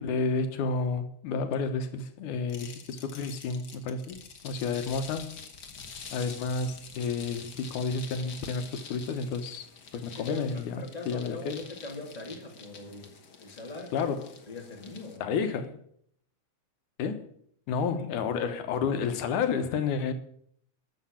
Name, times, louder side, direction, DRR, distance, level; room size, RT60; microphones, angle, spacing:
voice 1, 0.0-4.2 4.4-5.4 6.1-9.7 9.9-11.6 13.9-14.3 15.2-15.8 17.0-17.3 17.7-20.1, left 5 dB, 90° left, 2.6 m, -31 dB
sound 1, 2.5-15.2, left 5 dB, 45° left, 1.5 m, -47 dB
voice 2, 10.1-13.1 13.4-14.1 14.5-15.4 18.0-18.2, left 3 dB, 15° left, 2.2 m, -41 dB
13.5 x 6.6 x 8.5 m
omnidirectional pair, 3.4 m